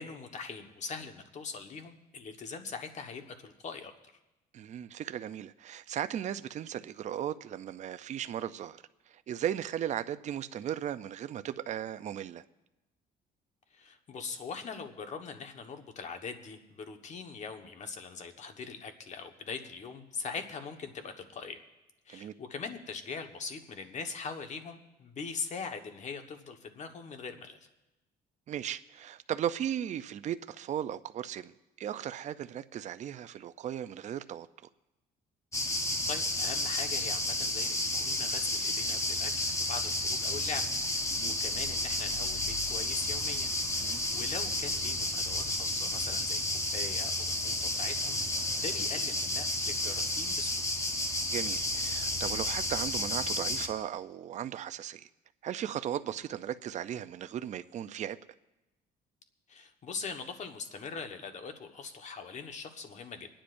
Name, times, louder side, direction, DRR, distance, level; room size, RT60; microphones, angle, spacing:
voice 1, 0.0-3.9 13.7-21.6 22.1-27.6 36.1-40.6 40.9-43.5 43.8-50.6 59.5-63.3, left 5 dB, 45° left, 1.3 m, -42 dB
voice 2, 4.5-12.4 22.1-22.3 28.5-31.5 31.8-34.5 41.1-41.4 43.8-44.0 51.3-55.1 55.4-58.2, right 10 dB, 45° right, 0.5 m, -36 dB
sound 1, 35.5-53.7, left 1 dB, 20° left, 1.1 m, -31 dB
28.5 x 10.0 x 2.6 m
cardioid pair, 110°, 17 cm